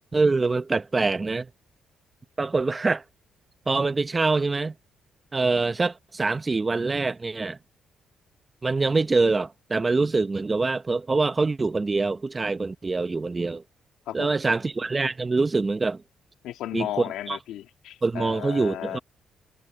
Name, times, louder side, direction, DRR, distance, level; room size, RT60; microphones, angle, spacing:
voice 1, 0.1-1.5 2.4-3.0 3.7-4.7 5.3-7.6 8.6-13.6 14.1-16.0 16.7-16.9 17.3-17.4 18.0-19.0, right 3 dB, 25° right, 0.8 m, -24 dB
voice 2, 16.4-19.0, left 12 dB, 85° left, 1.9 m, -34 dB
cardioid pair, 90°, 0 cm